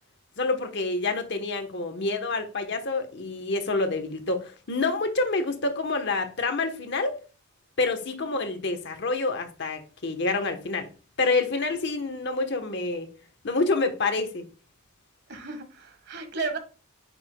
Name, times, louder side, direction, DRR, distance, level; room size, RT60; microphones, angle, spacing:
voice 1, 0.4-7.2 7.8-10.9 11.2-13.1 13.4-14.5, left 3 dB, 55° left, 1.1 m, -27 dB
voice 2, 15.3-16.6, right 4 dB, 55° right, 1.5 m, -34 dB
9.2 x 5.8 x 2.2 m
head